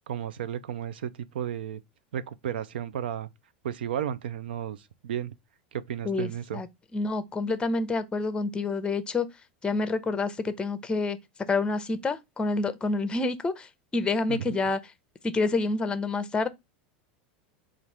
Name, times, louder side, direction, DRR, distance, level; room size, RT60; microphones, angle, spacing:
voice 1, 0.1-1.8 2.1-3.3 3.6-5.3 5.7-6.6 14.3-14.6, right 9 dB, 80° right, 0.5 m, -33 dB
voice 2, 6.0-6.7 6.9-9.3 9.6-11.2 11.5-14.8 15.2-16.5, left 3 dB, 15° left, 0.7 m, -28 dB
4.1 x 2.5 x 4.7 m
hypercardioid pair, 100°, 5 cm